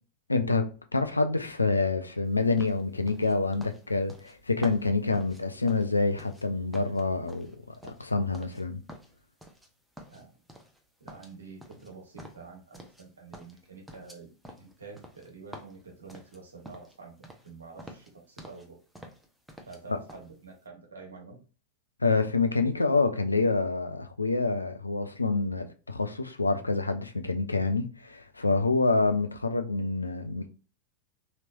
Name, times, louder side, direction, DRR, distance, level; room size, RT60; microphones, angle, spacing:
voice 1, 0.3-8.8 19.9-20.0 22.0-30.5, left 3 dB, 80° left, 0.4 m, -27 dB
sound 1, 2.6-6.5 6.7-8.6 8.9-9.7 10.0-10.8 11.1-13.1 13.3-17.0 17.2-17.5 17.8-18.7 18.9-19.8 20.1-20.3, equal, 5° right, 0.6 m, -49 dB
voice 2, 11.0-14.3 14.6-18.8 19.6-21.4, right 4 dB, 70° right, 1.1 m, -48 dB
3.0 x 2.9 x 2.4 m
figure-of-eight pair, 90°, 0 cm